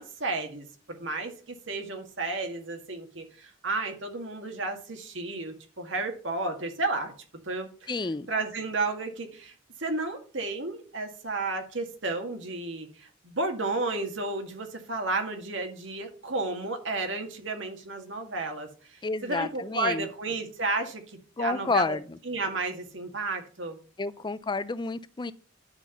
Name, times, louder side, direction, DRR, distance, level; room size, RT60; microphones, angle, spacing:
voice 1, 0.0-7.1 7.4-7.9 8.3-9.5 9.8-22.0 22.3-23.8, right 3 dB, 65° right, 2.0 m, -32 dB
voice 2, 7.9-8.3 19.0-20.1 21.4-22.2 24.0-25.3, left 3 dB, 25° left, 0.5 m, -30 dB
11.0 x 4.8 x 5.7 m
head